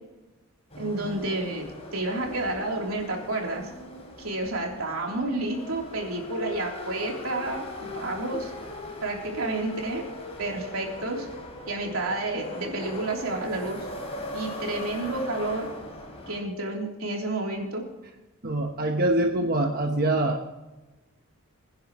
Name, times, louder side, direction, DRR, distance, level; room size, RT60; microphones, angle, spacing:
sound 1, 0.7-16.4, left 1 dB, 30° left, 3.4 m, -39 dB
voice 1, 0.8-3.7 4.2-7.6 7.9-8.5 9.0-10.0 10.4-11.3 11.7-13.8 14.3-15.7 16.3-17.9, right 2 dB, 85° right, 0 dB, 3.4 m, -30 dB
voice 2, 18.4-20.4, right 1 dB, 45° right, 2 dB, 1.1 m, -24 dB
22.0 x 10.0 x 3.1 m, 1.1 s
head